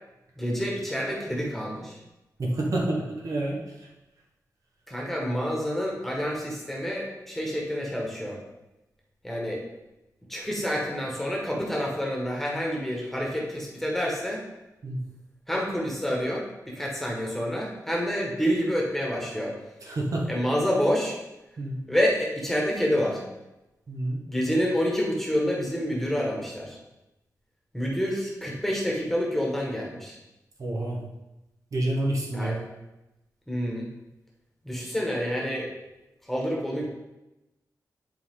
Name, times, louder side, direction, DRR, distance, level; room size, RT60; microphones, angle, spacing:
voice 1, 0.4-2.0 4.9-8.4 9.2-9.6 10.3-14.4 15.5-19.5 20.3-21.2 21.9-23.2 24.3-26.8 27.7-30.2 32.3-32.6 33.5-33.9 34.6-35.7 36.2-36.9, equal, 5° left, -2 dB, 1.6 m, -28 dB
voice 2, 2.4-3.6 14.8-15.0 19.8-20.3 21.6-21.8 23.9-24.2 30.6-31.0 31.7-32.6, right 1 dB, 55° right, -2 dB, 1.4 m, -28 dB
10.5 x 4.2 x 3.8 m, 0.99 s
wide cardioid pair, 130°, 7 cm